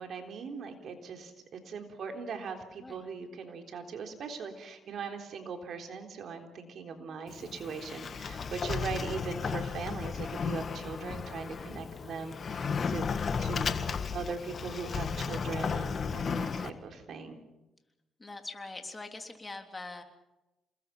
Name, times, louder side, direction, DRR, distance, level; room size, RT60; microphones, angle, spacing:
voice 1, 0.0-13.1 13.4-13.7 14.1-17.4, right 5 dB, 60° right, 4 dB, 3.7 m, -40 dB
Sliding door, 7.3-16.7, left 6 dB, 45° left, 1.5 m, -34 dB
voice 2, 18.2-20.0, left 3 dB, 20° left, 4 dB, 3.4 m, -43 dB
28.0 x 21.0 x 6.0 m, 0.99 s
cardioid pair, 90°, 0 cm